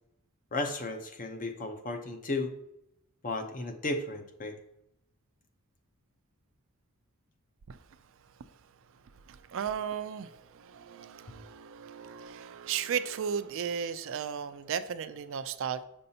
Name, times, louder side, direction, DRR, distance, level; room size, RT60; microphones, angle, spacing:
voice 1, 0.5-2.5 3.2-4.6, left 2 dB, 35° left, 6 dB, 0.7 m, -34 dB
voice 2, 9.5-10.3 10.6-15.8, right 7 dB, 60° right, 11 dB, 0.4 m, -35 dB
7.6 x 5.3 x 2.8 m, 0.82 s
head